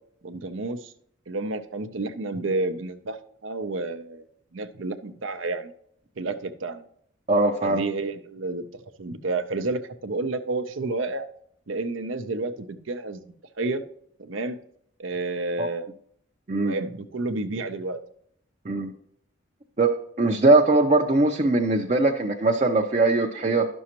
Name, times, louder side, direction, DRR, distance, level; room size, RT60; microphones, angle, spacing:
voice 1, 0.2-0.9 1.3-4.3 4.5-5.7 6.2-6.8 7.6-8.6 9.0-11.3 11.7-13.2 13.6-13.8 14.2-14.6 15.0-15.9 16.6-18.0, right 3 dB, 80° right, 11 dB, 0.6 m, -30 dB
voice 2, 7.3-7.8 15.6-15.7 16.5-16.8 18.6-18.9 19.8-23.7, right 2 dB, 35° right, 2 dB, 0.5 m, -21 dB
11.0 x 6.2 x 2.9 m, 0.68 s
head